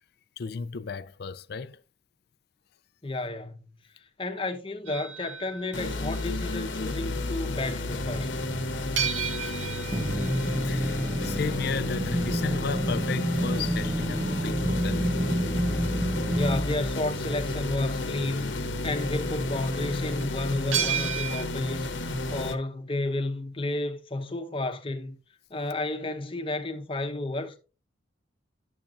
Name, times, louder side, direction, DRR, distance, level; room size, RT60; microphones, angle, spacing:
voice 1, 0.4-1.8 10.6-15.1, left 5 dB, 55° left, 0.4 m, -34 dB
voice 2, 3.0-3.6 4.2-8.3 16.3-21.9 22.3-25.1 25.5-27.6, left 2 dB, 25° left, 0.9 m, -32 dB
sound 1, 4.9-7.1 9.0-15.6 20.7-21.4, right 8 dB, 90° right, 0.8 m, -35 dB
sound 2, 5.7-22.6, left 2 dB, 75° left, 1.0 m, -31 dB
sound 3, 9.9-16.7, right 1 dB, 15° right, 0.4 m, -30 dB
10.0 x 7.0 x 2.5 m
head